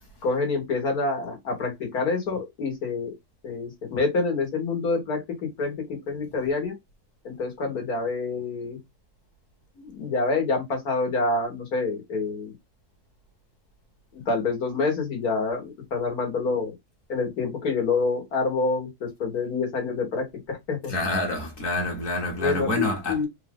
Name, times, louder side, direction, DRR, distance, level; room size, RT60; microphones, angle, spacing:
voice 1, 0.2-3.1 3.4-5.2 5.6-5.8 6.1-6.8 7.3-8.8 9.8-12.5 14.3-16.7 17.1-20.9 22.4-23.3, left 3 dB, 85° left, 2.0 m, -27 dB
voice 2, 20.9-23.3, left 1 dB, 60° left, 1.5 m, -27 dB
4.2 x 2.5 x 3.4 m
omnidirectional pair, 1.6 m